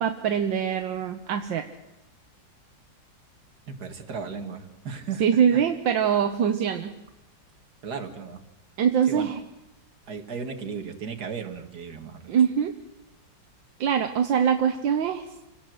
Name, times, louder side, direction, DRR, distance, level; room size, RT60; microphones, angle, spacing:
voice 1, 0.0-1.7 5.2-6.9 8.8-9.4 12.3-12.7 13.8-15.5, right 8 dB, 75° right, 7 dB, 1.7 m, -23 dB
voice 2, 3.7-5.2 7.8-8.4 9.1-9.3 10.1-12.3, right 5 dB, 55° right, 5 dB, 2.5 m, -35 dB
28.0 x 17.5 x 7.9 m, 0.90 s
omnidirectional pair, 2.1 m